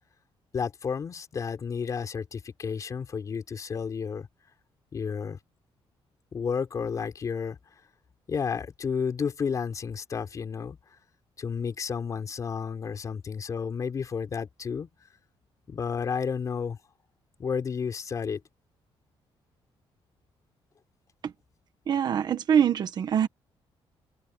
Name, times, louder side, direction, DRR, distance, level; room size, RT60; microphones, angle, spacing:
voice 1, 0.5-4.3 4.9-5.4 6.3-7.6 8.3-10.8 11.4-14.9 15.7-16.8 17.4-18.4, left 6 dB, 35° left, 3.9 m, -31 dB
voice 2, 21.9-23.3, right 8 dB, 45° right, 1.3 m, -24 dB
cardioid pair, 170°, 10 cm